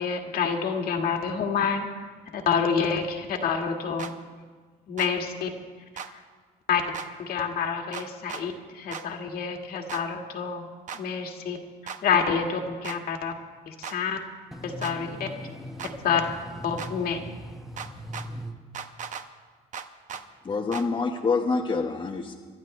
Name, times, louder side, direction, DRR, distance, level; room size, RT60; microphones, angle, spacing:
voice 1, 0.0-4.1 4.9-5.5 6.7-6.8 7.2-10.7 10.9-11.6 11.8-13.3 13.7-14.2 14.6-15.3 16.0-16.2 16.6-17.2, left 6 dB, 60° left, 1.9 m, -28 dB
sound 1, 4.0-4.1 5.0-5.1 6.0-6.1 6.9-7.1 7.9-8.4 8.9-9.0 9.9-10.0 10.9-11.0 11.9-12.0 12.8-13.0 13.8-14.0 14.8-14.9 15.8-15.9 16.8-16.9 17.8-18.3 18.7-19.2 19.7-20.2 20.7-20.9, right 7 dB, 50° right, 0.9 m, -37 dB
voice 2, 14.5-16.1 16.8-16.9 17.2-18.5, equal, ahead, 1.3 m, -39 dB
voice 3, 20.4-22.3, left 4 dB, 30° left, 1.1 m, -26 dB
25.5 x 12.0 x 3.2 m
cardioid pair, 110°, 17 cm